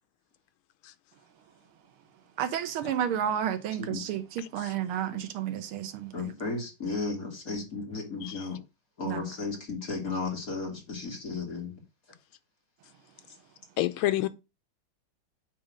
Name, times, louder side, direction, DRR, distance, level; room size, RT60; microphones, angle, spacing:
voice 1, 2.4-6.3 9.0-9.3, right 9 dB, 90° right, 1.9 m, -31 dB
voice 2, 6.1-8.6 9.0-11.7, left 3 dB, 40° left, 2.6 m, -34 dB
voice 3, 13.8-14.3, left 15 dB, 85° left, 1.5 m, -29 dB
8.8 x 3.1 x 6.2 m
omnidirectional pair, 2.3 m